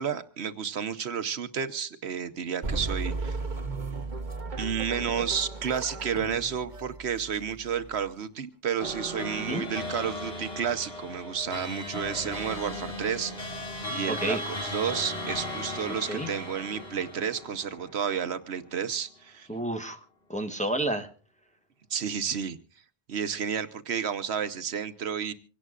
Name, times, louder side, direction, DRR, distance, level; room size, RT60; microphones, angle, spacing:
voice 1, 0.0-3.4 4.6-19.5 21.9-22.6 23.1-25.3, right 7 dB, 80° right, 10 dB, 1.2 m, -31 dB
sound 1, 2.6-8.1, right 3 dB, 45° right, 1.4 m, -35 dB
sound 2, 8.8-18.4, left 1 dB, 65° left, 3.1 m, -37 dB
voice 2, 14.1-14.4 16.1-16.3 19.5-20.0 20.3-21.1, right 1 dB, 5° left, 5 dB, 1.1 m, -30 dB
25.5 x 17.5 x 2.4 m, 0.37 s
omnidirectional pair, 1.1 m